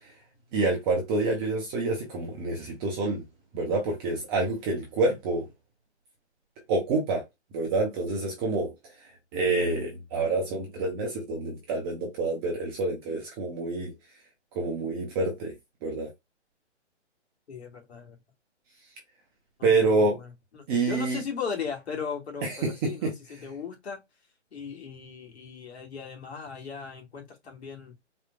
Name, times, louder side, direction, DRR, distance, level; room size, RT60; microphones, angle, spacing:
voice 1, 0.5-3.2 3.5-5.5 6.7-7.2 7.5-8.7 9.3-13.9 14.5-15.5 15.8-16.1 19.6-20.2 20.7-21.2 22.4-23.1, right 3 dB, 20° right, 1.0 m, -27 dB
voice 2, 17.5-18.2 19.6-24.0 24.5-27.9, left 6 dB, 65° left, 2.2 m, -37 dB
4.4 x 3.2 x 2.4 m
hypercardioid pair, 145°, 35 cm